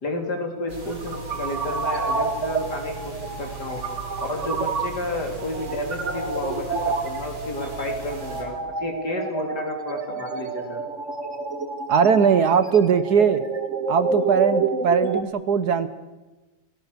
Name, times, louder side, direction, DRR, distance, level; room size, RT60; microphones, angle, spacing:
voice 1, 0.0-3.8 4.2-10.8, left 2 dB, 60° left, 3 dB, 4.2 m, -31 dB
sound 1, 0.7-15.2, right 4 dB, 40° right, 2.0 m, -29 dB
sound 2, 0.7-8.4, right 3 dB, 90° right, 6.3 m, -39 dB
voice 2, 11.9-13.4 13.9-15.9, right 7 dB, 60° right, 13 dB, 1.4 m, -19 dB
29.0 x 19.5 x 6.8 m, 1.2 s
omnidirectional pair, 2.1 m